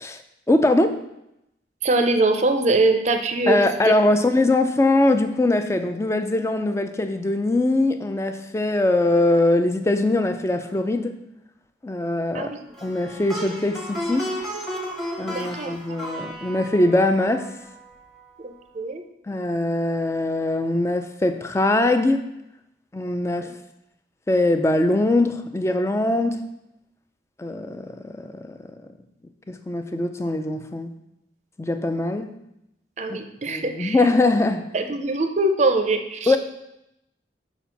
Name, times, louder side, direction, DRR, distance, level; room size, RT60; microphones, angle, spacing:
voice 1, 0.5-1.0 3.5-11.2 11.8-12.5 12.8-14.3 15.2-17.5 19.3-22.2 22.9-23.5 24.3-26.4 27.4-28.6 29.5-30.9 31.6-32.3 33.1-33.2 33.5-34.7 36.3-36.4, left 2 dB, 15° left, 8 dB, 0.4 m, -22 dB
voice 2, 1.8-3.9 12.3-12.7 15.3-16.0 18.4-19.0 23.4-23.5 33.0-34.0 34.7-36.4, right 2 dB, 40° right, 7 dB, 0.5 m, -23 dB
Plucked string instrument, 12.7-18.0, equal, ahead, 0.9 m, -33 dB
5.0 x 4.3 x 5.7 m, 0.84 s
head